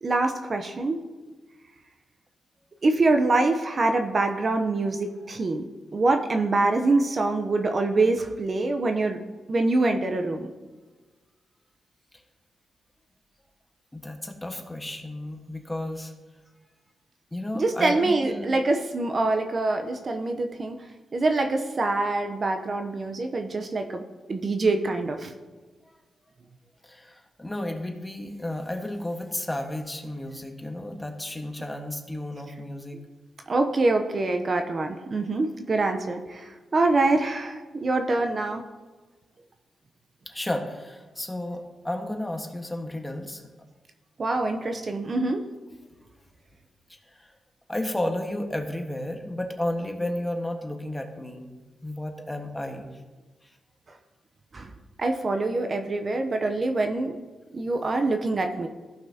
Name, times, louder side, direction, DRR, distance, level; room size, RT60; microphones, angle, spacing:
voice 1, 0.0-1.0 2.8-5.6 5.9-9.2 9.5-10.5 17.5-20.8 21.1-24.0 24.3-25.3 33.5-38.7 44.2-45.4 54.5-54.7 55.0-57.2 57.5-58.7, right 2 dB, 45° right, 5 dB, 0.8 m, -25 dB
voice 2, 13.9-16.1 17.3-18.5 26.8-33.0 40.2-43.4 46.9-47.3 47.7-51.5 51.8-52.9 53.4-53.5, left 1 dB, 15° left, 3 dB, 1.4 m, -33 dB
15.0 x 5.8 x 2.9 m, 1.3 s
cardioid pair, 65°, 0 cm